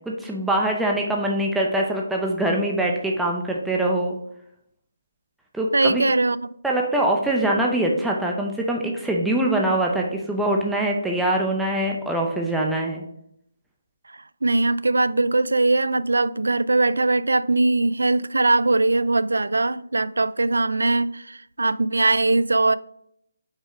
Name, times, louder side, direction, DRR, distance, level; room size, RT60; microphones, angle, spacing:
voice 1, 0.1-4.2 5.5-6.0 6.6-13.0, right 1 dB, 5° right, 0.7 m, -23 dB
voice 2, 5.7-6.4 14.4-22.8, right 2 dB, 90° right, 0.3 m, -21 dB
5.5 x 4.7 x 4.9 m
hypercardioid pair, 160°, 0 cm